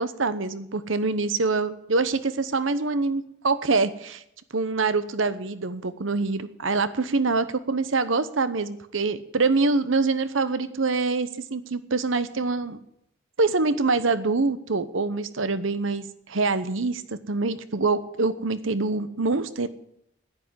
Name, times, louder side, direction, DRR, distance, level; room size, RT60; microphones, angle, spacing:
voice 1, 0.0-4.2 4.5-12.8 13.4-17.0 17.3-19.7, right 3 dB, 85° right, 13 dB, 0.9 m, -25 dB
10.5 x 9.8 x 9.5 m, 0.78 s
head